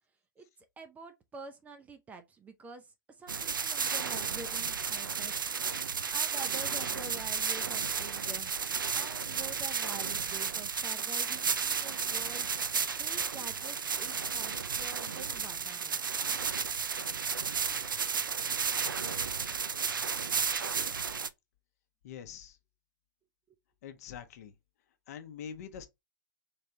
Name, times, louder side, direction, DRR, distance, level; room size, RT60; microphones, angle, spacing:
voice 1, 0.8-5.5 6.1-8.5 8.9-12.5 13.0-16.1, right 4 dB, 15° right, 0.4 m, -47 dB
sound 1, 3.3-21.3, right 6 dB, 75° right, 0.4 m, -33 dB
voice 2, 22.0-22.6 23.8-24.6 25.1-25.9, left 8 dB, 50° left, 0.8 m, -45 dB
3.3 x 3.2 x 2.7 m
figure-of-eight pair, 110°, 11 cm